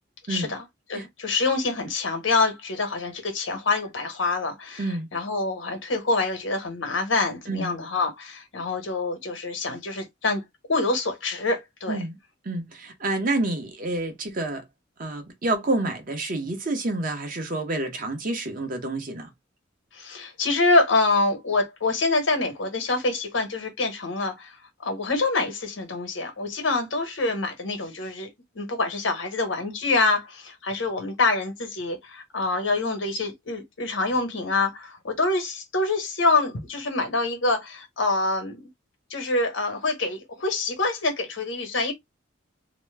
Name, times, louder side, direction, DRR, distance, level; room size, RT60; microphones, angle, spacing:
voice 1, 0.3-0.6 0.9-10.4 10.7-12.0 19.9-24.6 24.8-28.3 28.5-38.7 39.1-41.9, left 3 dB, 85° left, 1.2 m, -26 dB
voice 2, 11.9-12.2 12.4-14.6 15.0-19.3, right 2 dB, 45° right, 0.8 m, -28 dB
2.9 x 2.2 x 3.2 m
head